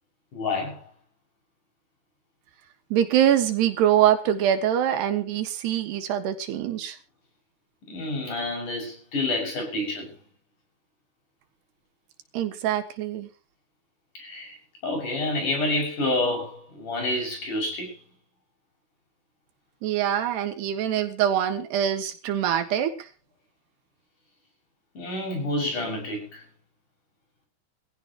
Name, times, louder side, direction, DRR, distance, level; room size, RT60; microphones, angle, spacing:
voice 1, 0.3-0.8 7.9-10.1 14.2-14.6 14.8-17.9 25.0-26.4, left 2 dB, 45° left, 7.7 m, -28 dB
voice 2, 2.9-7.0 12.3-13.3 19.8-22.9, right 10 dB, 80° right, 3.5 m, -24 dB
22.0 x 16.0 x 3.0 m
omnidirectional pair, 4.9 m